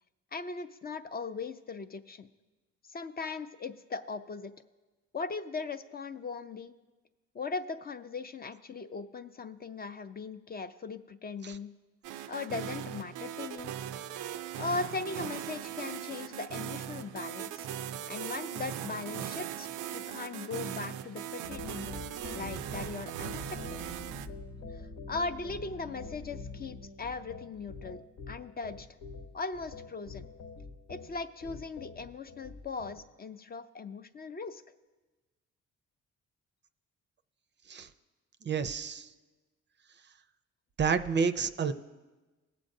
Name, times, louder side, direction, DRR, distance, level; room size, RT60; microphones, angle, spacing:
voice 1, 0.3-2.3 2.9-4.5 5.1-6.7 7.3-11.7 12.3-13.7 14.6-17.7 18.1-21.9 22.3-23.8 25.1-28.0 28.3-28.9 29.3-30.3 30.9-34.6, left 4 dB, 30° left, 10 dB, 0.4 m, -39 dB
sound 1, 12.0-24.3, right 11 dB, 85° right, 0.5 m, -39 dB
sound 2, 21.4-33.0, left 3 dB, 70° left, 1.0 m, -45 dB
voice 2, 38.5-39.1 40.8-41.7, right 6 dB, 35° right, 11 dB, 0.5 m, -29 dB
19.0 x 7.5 x 2.7 m, 1.2 s
cardioid pair, 90°, 30 cm